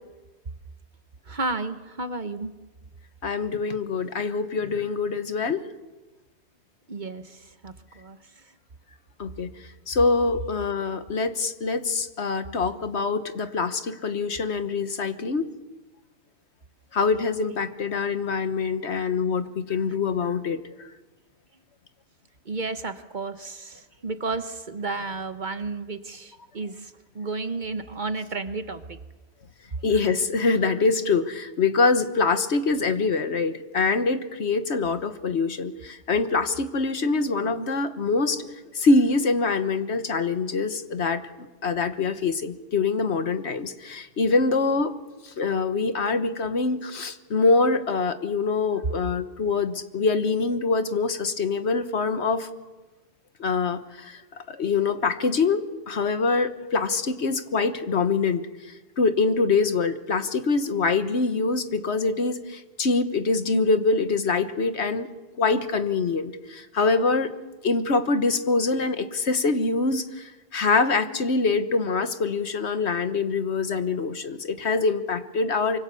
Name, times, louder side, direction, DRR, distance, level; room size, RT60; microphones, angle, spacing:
voice 1, 1.2-2.5 6.9-8.5 22.4-29.0, right 3 dB, 45° right, 9 dB, 1.3 m, -32 dB
voice 2, 3.2-5.6 9.2-9.5 9.9-15.5 16.9-20.6 29.8-38.5 38.7-44.9 45.2-52.5 53.4-54.2 54.5-58.4 59.0-65.1 65.4-67.3 67.6-75.8, left 4 dB, 75° left, 10 dB, 1.5 m, -24 dB
25.0 x 24.5 x 7.0 m, 1.1 s
omnidirectional pair, 1.1 m